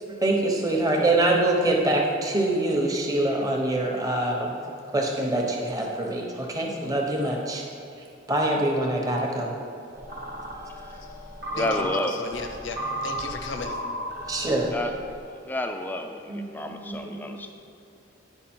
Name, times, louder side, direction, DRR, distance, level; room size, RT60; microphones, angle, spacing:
voice 1, 0.1-4.6 4.9-7.6 8.3-9.5 11.5-11.6 14.3-14.7 16.3-17.5, right 1 dB, 20° right, 0 dB, 0.9 m, -25 dB
sound 1, 9.9-15.2, equal, 45° right, 1.1 m, -35 dB
voice 2, 10.7-11.1 11.5-12.2 14.7-15.1 15.4-17.5, left 1 dB, 10° left, 4 dB, 0.3 m, -31 dB
voice 3, 11.5-13.8, left 3 dB, 75° left, 5 dB, 0.8 m, -34 dB
9.8 x 5.1 x 4.3 m, 2.6 s
head